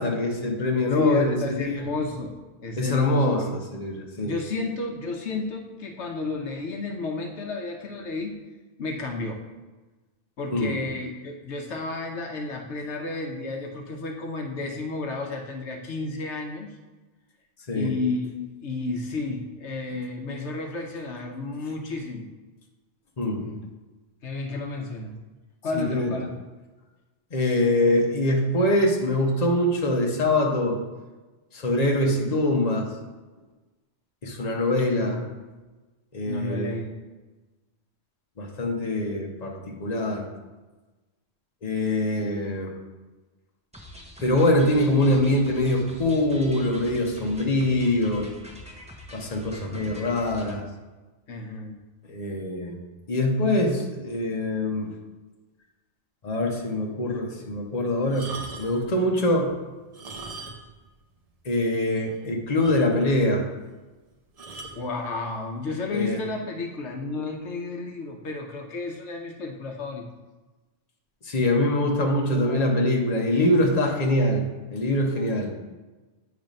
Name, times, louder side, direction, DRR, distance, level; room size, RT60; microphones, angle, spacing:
voice 1, 0.0-1.8 2.8-4.4 10.5-10.8 17.7-17.9 23.2-23.4 25.7-26.2 27.3-30.8 31.5-32.9 34.2-35.2 36.1-36.7 38.4-40.3 41.6-42.7 44.2-48.3 49.1-50.6 52.1-52.8 53.1-54.9 56.2-58.3 58.6-59.5 61.4-63.4 65.9-66.2 71.2-74.4 74.7-75.5, left 1 dB, 35° left, 0 dB, 1.0 m, -24 dB
voice 2, 0.9-2.3 2.6-3.6 4.2-8.4 8.8-9.4 10.4-16.7 17.7-18.3 18.6-22.3 23.4-23.7 24.2-25.1 25.6-26.3 34.9-35.3 36.3-36.9 49.6-49.8 51.3-51.8 64.8-70.1 72.3-72.6, left 3 dB, 75° left, 2 dB, 1.1 m, -32 dB
sound 1, 43.7-50.6, left 1 dB, 5° right, 0.8 m, -44 dB
sound 2, 58.1-58.9 59.8-60.8 61.1-61.2 61.8-61.9 62.1-62.2 62.6-63.2 64.4-64.8 65.7-65.9, right 3 dB, 40° right, 0.7 m, -40 dB
8.8 x 3.2 x 5.2 m, 1.2 s
omnidirectional pair, 1.2 m